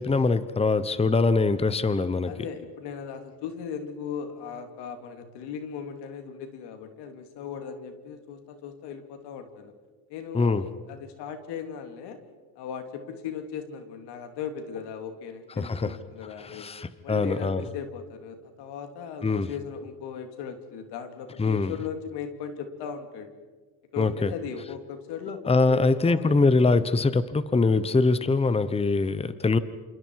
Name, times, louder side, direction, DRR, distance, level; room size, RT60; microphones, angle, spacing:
voice 1, 0.0-2.3 10.3-10.6 15.6-16.0 16.4-17.6 19.2-19.5 21.4-21.7 24.0-24.3 25.5-29.6, left 3 dB, 15° left, 14 dB, 1.0 m, -23 dB
voice 2, 2.3-9.7 10.1-12.2 12.5-16.7 17.0-23.3 23.9-26.5, left 7 dB, 90° left, 7 dB, 2.9 m, -37 dB
28.5 x 28.0 x 4.8 m, 1.3 s
cardioid pair, 100°, 39 cm